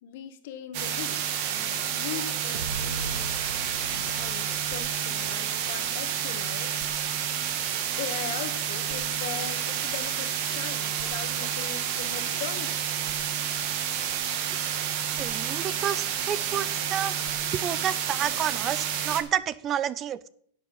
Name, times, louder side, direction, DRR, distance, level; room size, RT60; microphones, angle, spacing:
voice 1, 0.0-1.2 1.5-3.4 3.9-6.8 8.0-12.8, left 9 dB, 65° left, 9 dB, 1.5 m, -39 dB
sound 1, 0.7-19.2, right 9 dB, 55° right, 1.6 m, -30 dB
sound 2, 2.5-6.5, right 4 dB, 85° right, 1.1 m, -39 dB
voice 2, 15.2-17.2 17.5-20.3, right 9 dB, 30° right, 18 dB, 0.5 m, -30 dB
11.5 x 7.4 x 5.5 m, 0.64 s
hypercardioid pair, 110°, 0 cm